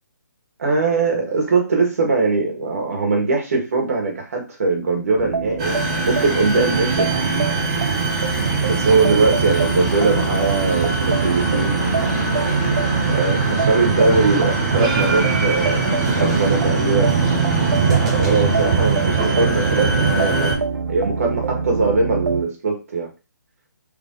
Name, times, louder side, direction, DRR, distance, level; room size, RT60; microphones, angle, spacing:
voice 1, 0.6-5.8 6.0-7.5 8.6-11.8 13.1-17.1 17.9-20.6 20.9-23.1, right 3 dB, 45° right, 1 dB, 1.2 m, -21 dB
sound 1, 5.2-22.4, right 5 dB, 90° right, 0.8 m, -26 dB
sound 2, 5.6-20.5, right 4 dB, 15° right, 0.6 m, -21 dB
3.3 x 2.5 x 3.7 m, 0.30 s
hypercardioid pair, 175°, 10 cm